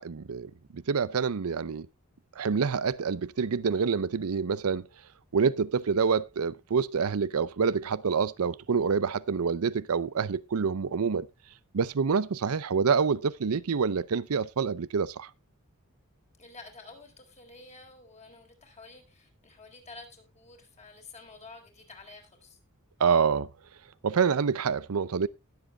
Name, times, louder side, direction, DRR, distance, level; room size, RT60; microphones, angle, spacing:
voice 1, 0.0-1.9 2.4-4.9 5.3-11.3 11.7-15.3 23.0-23.5 24.0-25.3, right 5 dB, 75° right, 0.5 m, -27 dB
voice 2, 16.4-22.6, left 3 dB, 30° left, 3.9 m, -50 dB
20.0 x 7.7 x 2.3 m
head